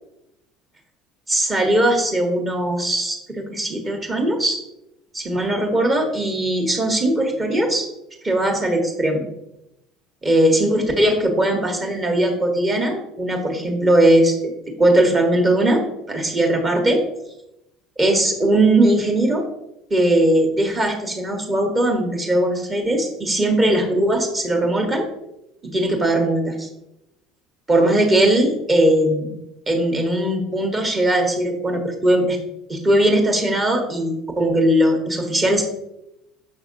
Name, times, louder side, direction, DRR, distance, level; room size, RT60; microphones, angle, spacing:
voice 1, 1.3-4.6 5.1-7.9 8.2-9.2 10.2-14.5 14.8-17.0 18.0-19.4 19.9-25.1 25.6-26.7 27.7-29.4 29.7-32.4 32.7-35.6, right 1 dB, 25° right, 3 dB, 1.3 m, -19 dB
6.5 x 5.5 x 2.7 m, 0.86 s
figure-of-eight pair, 60°, 0 cm